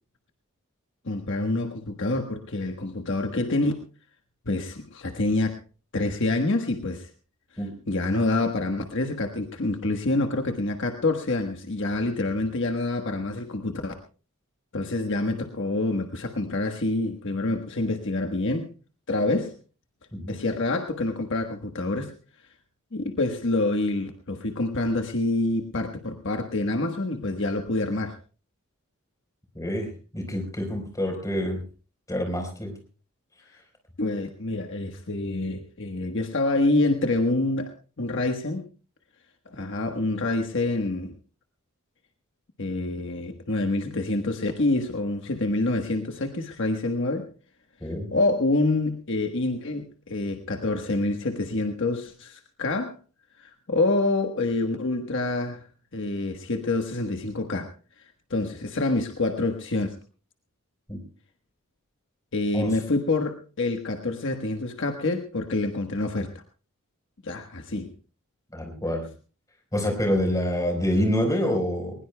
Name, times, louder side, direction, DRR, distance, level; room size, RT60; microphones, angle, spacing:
voice 1, 1.0-3.7 4.5-5.6 5.9-7.1 7.9-13.9 14.7-18.7 19.1-19.5 20.3-22.1 22.9-28.2 34.0-37.7 38.0-38.6 39.5-41.1 42.6-47.3 48.1-52.9 53.4-55.6 55.9-57.7 58.3-59.9 62.3-66.3 67.2-67.9, left 2 dB, 60° left, 5 dB, 1.3 m, -27 dB
voice 2, 29.5-31.6 32.1-32.8 47.8-48.1 60.9-61.0 62.5-62.7 68.5-69.1 69.7-71.9, equal, 15° left, 2 dB, 4.3 m, -27 dB
21.0 x 20.5 x 2.3 m, 0.36 s
head